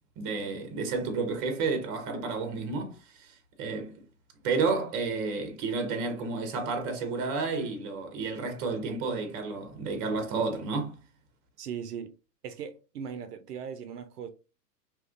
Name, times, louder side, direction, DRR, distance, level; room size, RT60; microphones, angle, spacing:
voice 1, 0.2-4.0 4.4-11.0, right 4 dB, 30° right, 0.7 m, -31 dB
voice 2, 11.6-12.1 12.4-14.3, right 7 dB, 70° right, 0.6 m, -38 dB
2.9 x 2.3 x 2.4 m
figure-of-eight pair, 105°, 49 cm